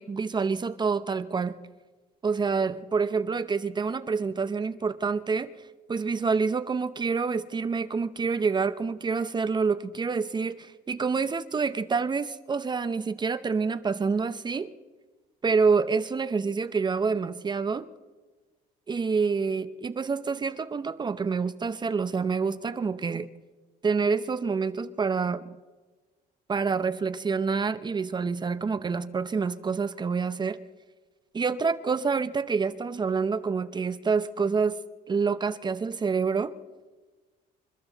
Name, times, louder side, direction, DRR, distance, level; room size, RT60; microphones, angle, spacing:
voice 1, 0.0-1.6 2.2-5.5 5.9-14.7 15.4-17.9 18.9-23.3 23.8-25.5 26.5-30.6 31.3-34.8 35.1-36.5, right 5 dB, 25° right, 12 dB, 0.7 m, -27 dB
28.5 x 12.5 x 4.0 m, 1.3 s
cardioid pair, 110°, 17 cm